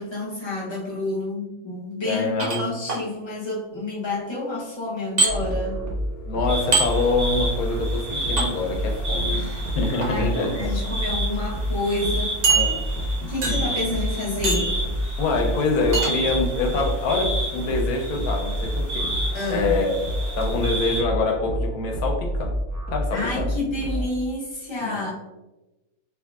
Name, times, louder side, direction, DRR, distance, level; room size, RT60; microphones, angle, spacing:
voice 1, 0.0-5.8 9.3-12.3 13.3-14.8 19.3-19.8 23.1-25.1, left 2 dB, 30° left, -6 dB, 0.5 m, -29 dB
voice 2, 2.0-2.7 6.3-9.5 9.7-10.7 12.5-12.8 13.2-13.6 15.2-19.1 19.5-20.0 20.4-22.5 22.9-23.5 24.8-25.0, left 3 dB, 75° left, 2 dB, 1.1 m, -25 dB
sound 1, 2.4-3.0 5.2-5.3 6.7-6.9 8.4-8.5 9.8-10.1 10.8-10.9 11.3-11.4 12.4-13.1 13.4-13.8 14.4-14.8 15.9-16.1, right 4 dB, 60° right, 0.4 m, -22 dB
sound 2, 5.3-24.1, equal, 15° right, 0.8 m, -28 dB
sound 3, 6.5-21.0, right 1 dB, 80° right, 1.9 m, -32 dB
3.5 x 3.3 x 2.3 m, 1.0 s
omnidirectional pair, 1.6 m